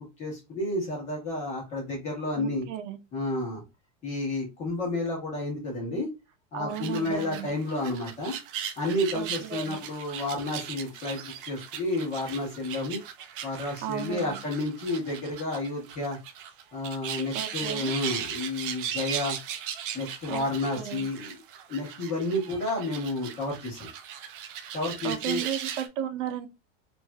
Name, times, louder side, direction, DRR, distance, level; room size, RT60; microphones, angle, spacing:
voice 1, 0.0-2.6 3.1-3.6 4.0-6.1 6.5-8.3 8.8-13.0 13.4-16.2 16.7-19.4 19.9-21.4 21.7-23.9 24.7-25.4, left 2 dB, 20° left, 1.1 m, -31 dB
voice 2, 2.4-3.0 6.5-7.5 9.1-9.8 13.8-14.4 17.3-17.9 20.3-20.5 20.8-21.0 25.0-26.5, right 10 dB, 90° right, 0.6 m, -34 dB
sound 1, 6.7-25.9, right 9 dB, 50° right, 0.5 m, -38 dB
3.3 x 2.6 x 2.2 m
supercardioid pair, 175°, 36 cm